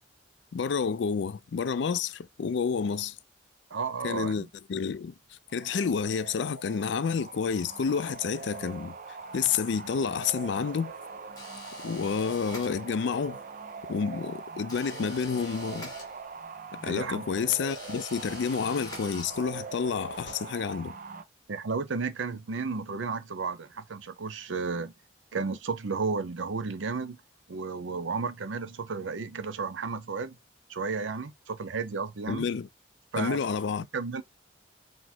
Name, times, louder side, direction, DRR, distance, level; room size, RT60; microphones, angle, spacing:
voice 1, 0.5-3.2 4.0-5.1 5.5-9.0 9.3-10.9 11.8-13.4 13.9-15.9 16.7-20.9 32.3-32.7 33.2-33.9, left 6 dB, 65° left, 0.4 m, -29 dB
voice 2, 3.7-4.5 16.8-17.2 21.5-24.9 25.3-27.2 27.5-30.4 30.7-32.5 33.1-33.4 33.9-34.2, right 4 dB, 85° right, 0.6 m, -33 dB
sound 1, 5.5-21.2, right 4 dB, 45° right, 0.5 m, -42 dB
sound 2, 11.4-13.2 14.7-16.6 17.6-19.7, left 2 dB, 20° left, 1.5 m, -46 dB
4.2 x 2.0 x 4.4 m
head